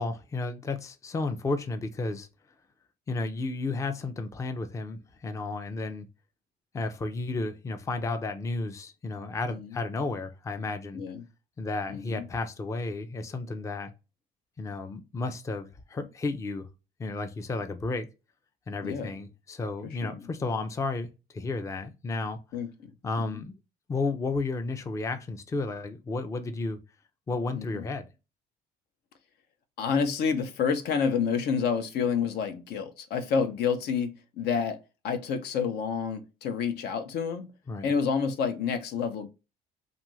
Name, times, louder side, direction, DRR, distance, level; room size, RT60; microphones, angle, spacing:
voice 1, 0.0-2.3 3.1-6.1 6.7-11.0 11.6-13.9 14.6-16.7 17.0-18.1 18.7-21.1 21.3-22.4 23.0-23.5 23.9-26.8 27.3-28.1 37.7-37.9, left 3 dB, 20° left, 0.4 m, -32 dB
voice 2, 10.9-11.2 11.9-12.3 18.8-19.1 19.9-20.3 22.5-22.9 23.2-23.4 27.6-27.8 29.8-34.8 35.0-37.5 37.8-39.3, left 6 dB, 75° left, 0.6 m, -29 dB
2.7 x 2.4 x 3.0 m
cardioid pair, 110°, 17 cm